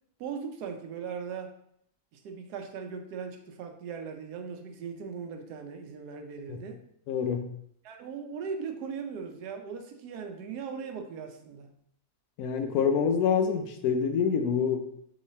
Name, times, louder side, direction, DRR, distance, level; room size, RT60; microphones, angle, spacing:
voice 1, 0.2-1.5 2.1-6.8 7.8-11.7, right 6 dB, 85° right, 5 dB, 1.2 m, -39 dB
voice 2, 7.1-7.5 12.4-14.8, left 6 dB, 75° left, 6 dB, 1.0 m, -26 dB
3.9 x 3.2 x 4.1 m, 0.69 s
omnidirectional pair, 1.7 m